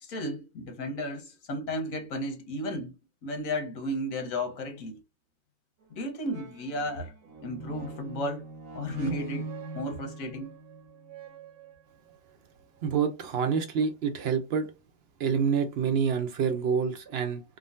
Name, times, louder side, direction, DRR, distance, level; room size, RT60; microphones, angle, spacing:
voice 1, 0.0-2.9 3.2-5.0 5.9-7.1 7.4-8.4 8.7-9.5 9.7-10.5, left 1 dB, 85° left, 1.3 m, -33 dB
sound 1, 5.8-5.9 6.2-12.2 12.8-12.9, right 3 dB, 80° right, 1.1 m, -42 dB
voice 2, 12.8-14.7 15.2-17.4, right 6 dB, 60° right, 0.7 m, -27 dB
3.7 x 2.1 x 2.5 m
omnidirectional pair, 1.4 m